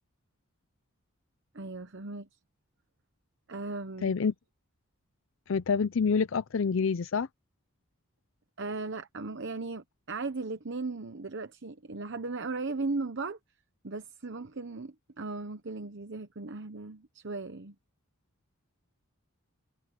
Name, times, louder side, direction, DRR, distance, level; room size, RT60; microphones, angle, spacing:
voice 1, 1.5-2.3 3.5-4.1 8.6-13.4 13.8-17.7, right 3 dB, 55° right, 1.0 m, -37 dB
voice 2, 4.0-4.3 5.5-7.3, left 5 dB, 65° left, 0.5 m, -27 dB
head